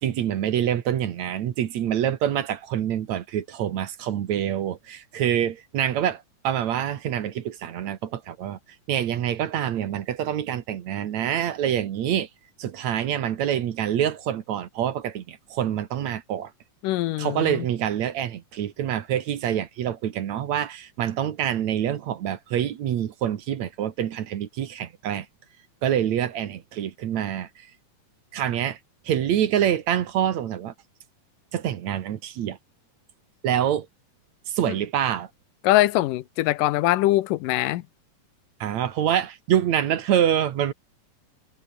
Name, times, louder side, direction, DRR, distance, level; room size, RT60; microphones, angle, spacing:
voice 1, 0.0-8.6 8.9-12.3 12.6-16.5 17.2-25.3 25.8-27.7 28.3-28.8 29.1-30.7 31.5-32.6 33.4-33.9 34.5-35.3 38.6-40.7, right 10 dB, 65° right, 2.5 m, -26 dB
voice 2, 16.8-17.6 35.6-37.8, left 16 dB, 85° left, 2.4 m, -22 dB
omnidirectional pair, 3.8 m